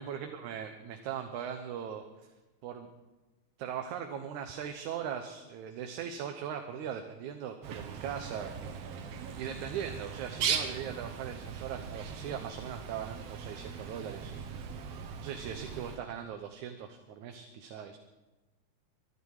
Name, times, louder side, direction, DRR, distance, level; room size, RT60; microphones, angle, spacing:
voice 1, 0.0-2.0 2.6-2.9 3.6-8.8 9.4-14.4 15.2-18.0, right 8 dB, 80° right, 5 dB, 2.4 m, -39 dB
Bird, 7.6-16.0, right 7 dB, 65° right, 2.1 m, -39 dB
23.5 x 11.0 x 4.8 m, 1.1 s
omnidirectional pair, 3.4 m